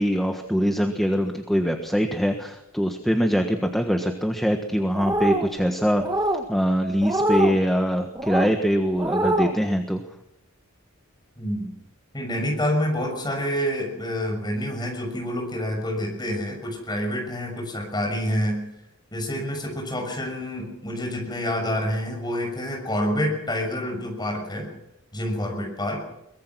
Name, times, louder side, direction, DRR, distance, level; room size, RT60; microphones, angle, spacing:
voice 1, 0.0-6.0 6.5-10.0, equal, ahead, 4 dB, 1.3 m, -23 dB
sound 1, 4.9-5.5 6.0-6.4 7.0-7.6 8.2-8.5 9.0-9.5, right 1 dB, 15° right, 1.6 m, -24 dB
voice 2, 11.4-11.7 12.1-18.6 19.1-24.7 25.1-26.0, equal, 20° left, 2 dB, 6.7 m, -27 dB
23.0 x 21.0 x 6.2 m, 0.79 s
head